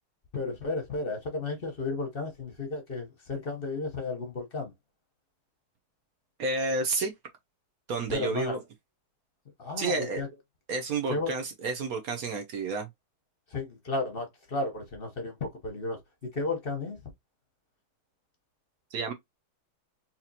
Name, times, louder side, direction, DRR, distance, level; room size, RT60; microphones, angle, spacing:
voice 1, 0.3-4.7 8.1-8.6 9.6-10.3 11.1-11.3 13.5-17.0, left 3 dB, 45° left, 0.7 m, -33 dB
voice 2, 6.4-7.1 7.9-8.6 9.8-10.2 10.7-12.9 18.9-19.1, right 3 dB, 70° right, 0.9 m, -30 dB
4.1 x 2.9 x 2.7 m
omnidirectional pair, 2.3 m